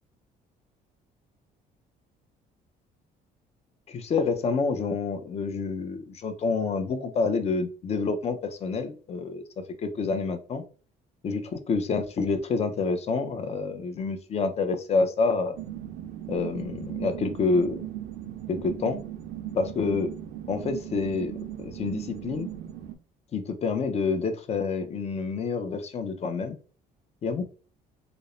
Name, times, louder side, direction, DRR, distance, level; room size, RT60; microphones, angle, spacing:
voice 1, 3.9-9.4 9.8-10.6 11.2-15.6 16.3-17.9 18.5-19.0 19.5-20.1 20.5-22.5 23.3-26.6 27.2-27.5, left 4 dB, 40° left, 7 dB, 0.5 m, -28 dB
sound 1, 15.6-23.0, right 12 dB, 85° right, 0.5 m, -38 dB
2.4 x 2.0 x 3.0 m, 0.38 s
cardioid pair, 110°, 17 cm